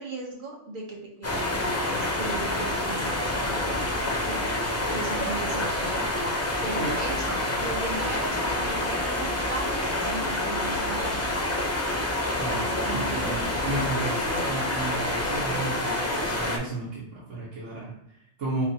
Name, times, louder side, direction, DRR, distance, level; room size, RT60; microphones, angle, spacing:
voice 1, 0.0-4.5 4.9-6.0 6.6-11.4 12.8-13.5, right 2 dB, 50° right, -1 dB, 0.9 m, -38 dB
sound 1, 1.2-16.6, left 1 dB, 25° left, 0.3 m, -27 dB
voice 2, 12.4-18.7, right 2 dB, 80° right, -7 dB, 1.3 m, -33 dB
4.3 x 3.2 x 2.7 m, 0.78 s
omnidirectional pair, 1.2 m